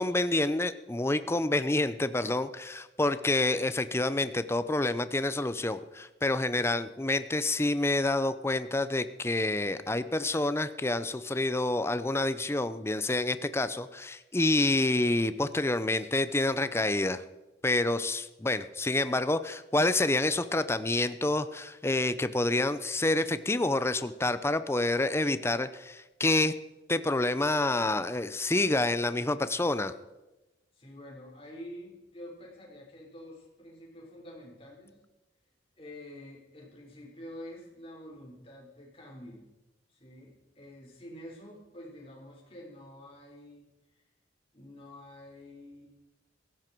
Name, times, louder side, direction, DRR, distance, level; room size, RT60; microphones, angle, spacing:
voice 1, 0.0-17.2 17.6-26.5 26.9-29.9, left 2 dB, 15° left, 13 dB, 0.6 m, -28 dB
voice 2, 30.7-35.0 35.8-39.5 39.9-43.6 43.9-44.0 44.5-45.9, left 1 dB, 30° left, -2 dB, 5.0 m, -47 dB
17.0 x 15.0 x 4.6 m, 1.0 s
head